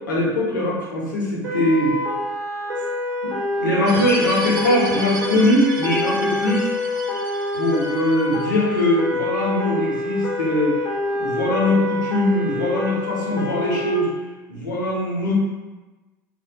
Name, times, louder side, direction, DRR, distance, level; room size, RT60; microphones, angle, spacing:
voice 1, 0.1-1.9 3.2-6.7 7.5-10.8 11.1-14.1 14.5-15.3, left 1 dB, 80° left, -4 dB, 0.7 m, -21 dB
sound 1, 1.4-13.9, left 2 dB, 80° right, 1.0 m, -26 dB
sound 2, 3.9-8.8, right 2 dB, 60° right, 0.5 m, -34 dB
2.8 x 2.1 x 2.7 m, 1.2 s
figure-of-eight pair, 70°, 10 cm